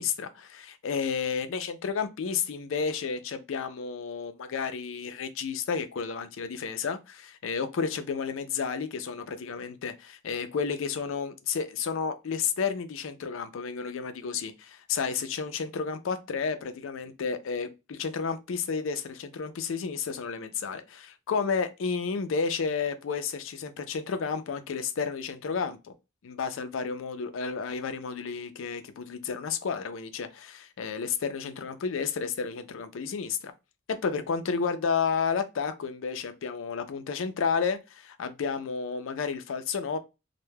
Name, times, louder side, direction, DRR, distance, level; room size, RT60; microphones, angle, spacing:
voice 1, 0.0-25.9 26.2-33.5 33.9-40.0, left 5 dB, 75° left, 0.4 m, -31 dB
2.2 x 2.1 x 3.1 m
head